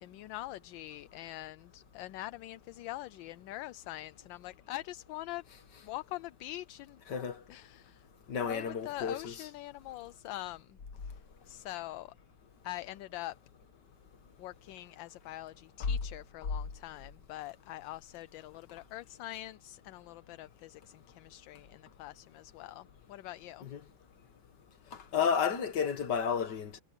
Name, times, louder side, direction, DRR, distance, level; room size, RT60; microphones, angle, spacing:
voice 1, 0.0-5.4 5.8-7.0 7.5-8.1 8.4-12.1 12.6-13.4 14.4-23.7, left 16 dB, 80° left, 1.3 m, -44 dB
voice 2, 8.3-9.3 15.8-15.9 23.6-23.8 24.9-26.8, left 7 dB, 60° left, 2.2 m, -32 dB
omnidirectional pair, 2.1 m